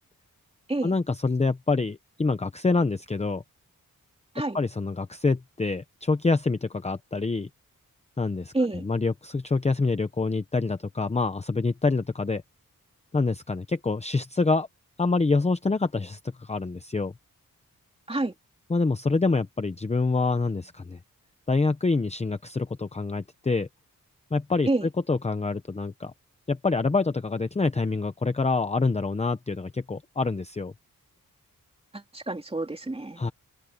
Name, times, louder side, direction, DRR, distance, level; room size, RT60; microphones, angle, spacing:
voice 1, 0.8-3.4 4.5-7.5 8.2-8.5 8.8-12.4 13.1-14.7 15.0-17.1 18.7-21.0 21.5-23.7 24.3-24.7 25.1-26.1 26.5-30.7 33.2-33.3, left 3 dB, 20° left, 0.7 m, -26 dB
voice 2, 8.5-8.8 18.1-18.3 24.7-24.9 31.9-33.2, right 2 dB, 15° right, 3.1 m, -28 dB
open air
wide cardioid pair, 150°, 34 cm